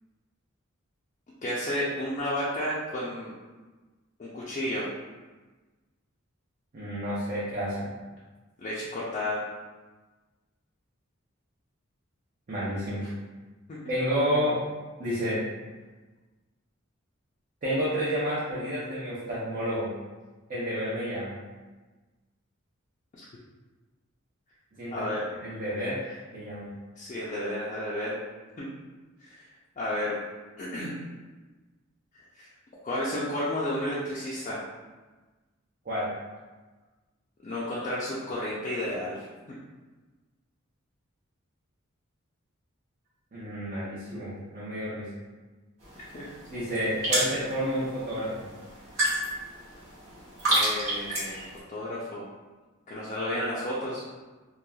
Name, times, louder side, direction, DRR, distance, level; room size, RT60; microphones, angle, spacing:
voice 1, 1.4-3.3 4.2-4.9 8.6-9.4 13.7-13.9 23.1-23.2 24.9-25.2 26.1-26.2 27.0-28.2 28.6-28.7 29.2-29.5 29.8-30.2 30.6-31.0 32.3-32.5 32.8-34.6 37.4-39.3 46.1-46.3 50.5-51.4 51.7-52.2 52.9-54.0, left 1 dB, 35° left, -7 dB, 0.4 m, -32 dB
voice 2, 6.7-7.8 12.5-13.1 13.9-14.6 15.0-15.4 17.6-19.9 20.5-21.3 24.8-25.1 25.4-26.0 26.3-26.7 35.9-36.1 43.3-45.1 46.5-48.5, equal, 40° right, -9 dB, 0.6 m, -30 dB
sound 1, 45.8-51.6, right 1 dB, 80° right, 1.3 m, -31 dB
3.0 x 2.3 x 2.2 m, 1.3 s
head